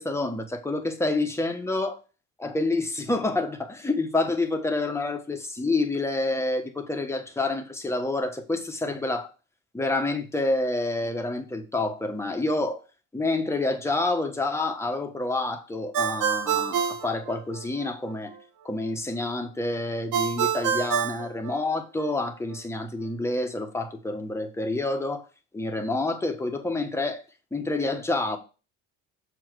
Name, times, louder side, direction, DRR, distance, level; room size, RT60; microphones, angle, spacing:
voice 1, 0.0-2.0 2.4-9.3 9.7-12.8 13.1-18.3 18.6-25.2 25.5-27.2 27.5-28.4, left 2 dB, 10° left, 1.2 m, -28 dB
Ringtone, 15.9-17.9 20.1-22.1, right 8 dB, 70° right, 1.2 m, -27 dB
7.2 x 4.6 x 4.7 m
cardioid pair, 120°, 32 cm